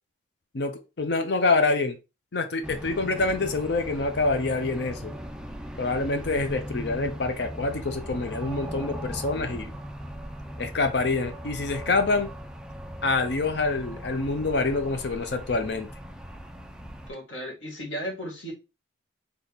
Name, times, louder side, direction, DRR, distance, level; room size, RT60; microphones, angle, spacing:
voice 1, 0.5-2.0 2.3-5.1 5.8-9.7 10.6-12.3 13.0-15.9, left 3 dB, 60° left, 0.6 m, -26 dB
sound 1, 2.6-17.1, equal, 5° right, 0.3 m, -38 dB
voice 2, 17.1-18.5, equal, 75° left, 1.9 m, -35 dB
4.0 x 3.3 x 3.5 m
head